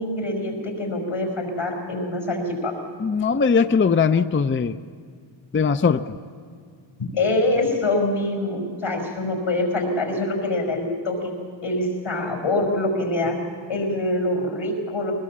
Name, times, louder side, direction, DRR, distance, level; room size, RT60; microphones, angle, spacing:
voice 1, 0.0-2.7 7.0-11.3 11.6-13.4 13.7-15.1, left 2 dB, 85° left, 3 dB, 5.4 m, -25 dB
voice 2, 3.0-4.8 5.5-6.1, left 5 dB, 25° left, 10 dB, 0.5 m, -20 dB
22.0 x 20.5 x 7.5 m, 2.1 s
wide cardioid pair, 110°, 48 cm